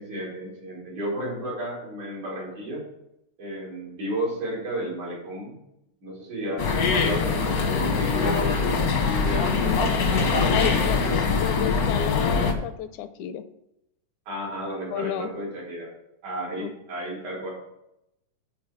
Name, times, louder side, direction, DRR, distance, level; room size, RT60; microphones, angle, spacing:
voice 1, 0.0-2.8 3.4-5.5 6.0-9.6 10.1-11.3 14.3-15.9 16.2-17.5, equal, 80° right, -5 dB, 5.4 m, -33 dB
sound 1, 6.6-12.5, left 4 dB, 60° left, 0.9 m, -23 dB
voice 2, 9.4-9.8 10.5-11.0 11.3-13.4 14.9-15.3 16.6-16.7, left 10 dB, 85° left, 11 dB, 2.0 m, -31 dB
10.5 x 4.6 x 6.6 m, 0.83 s
omnidirectional pair, 3.4 m